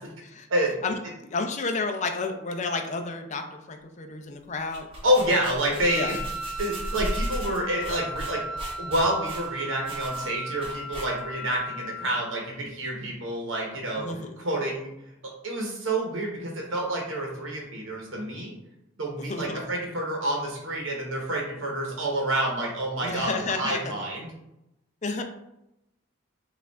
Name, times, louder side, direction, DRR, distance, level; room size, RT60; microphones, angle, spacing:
voice 1, 1.2-4.9 5.9-6.2 14.0-14.3 19.2-19.6 23.0-23.8 25.0-25.2, left 3 dB, 35° left, 4 dB, 0.5 m, -31 dB
sound 1, 4.5-11.5, equal, 25° right, 0.9 m, -36 dB
voice 2, 5.0-6.2 6.6-14.9 15.4-18.5 19.0-24.3, right 1 dB, 70° right, -1 dB, 0.9 m, -28 dB
Wind instrument woodwind instrument, 5.9-12.5, right 1 dB, 60° left, 1.0 m, -36 dB
5.1 x 2.5 x 3.4 m, 0.87 s
head